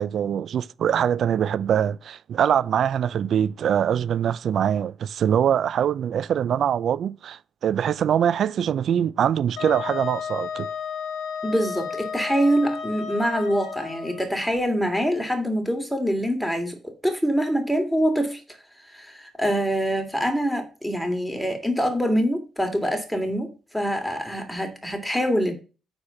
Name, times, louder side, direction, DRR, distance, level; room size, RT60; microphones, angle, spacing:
voice 1, 0.0-10.7, right 9 dB, 65° right, 0.4 m, -23 dB
Wind instrument woodwind instrument, 9.6-14.2, left 6 dB, 80° left, 1.7 m, -33 dB
voice 2, 11.4-18.4 18.8-25.5, equal, ahead, 2.8 m, -25 dB
9.8 x 4.4 x 5.8 m
cardioid pair, 90°, 0 cm